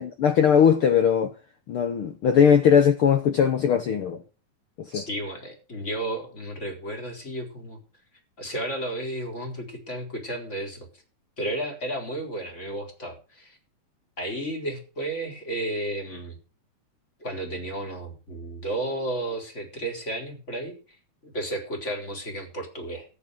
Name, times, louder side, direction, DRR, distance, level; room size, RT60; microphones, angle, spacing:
voice 1, 0.0-1.4 1.7-4.2 4.8-5.0, left 7 dB, 70° left, 1.3 m, -20 dB
voice 2, 4.9-7.8 8.4-10.9 11.4-13.6 14.2-16.4 17.2-20.7 21.2-23.1, right 1 dB, 20° left, 4.3 m, -33 dB
14.0 x 9.9 x 6.4 m
omnidirectional pair, 3.7 m